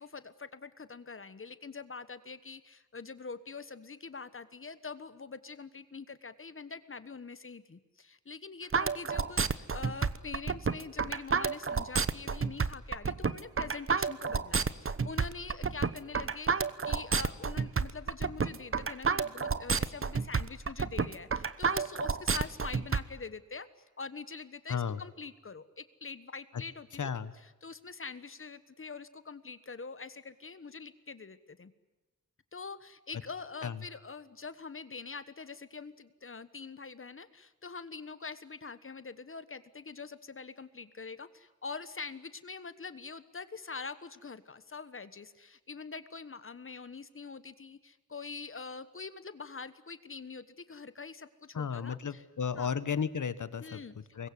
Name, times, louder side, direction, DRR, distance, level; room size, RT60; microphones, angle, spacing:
voice 1, 0.0-23.7 24.0-27.2 27.6-31.7 32.5-52.2 52.6-52.7 53.6-54.3, left 4 dB, 45° left, 13 dB, 1.3 m, -44 dB
sound 1, 8.7-23.0, right 5 dB, 45° right, 1.1 m, -30 dB
voice 2, 24.7-25.0 26.5-26.6 26.9-27.3 33.6-33.9 51.5-54.3, left 6 dB, 80° left, 14 dB, 1.5 m, -34 dB
25.0 x 21.5 x 9.9 m, 1.1 s
wide cardioid pair, 135°, 30 cm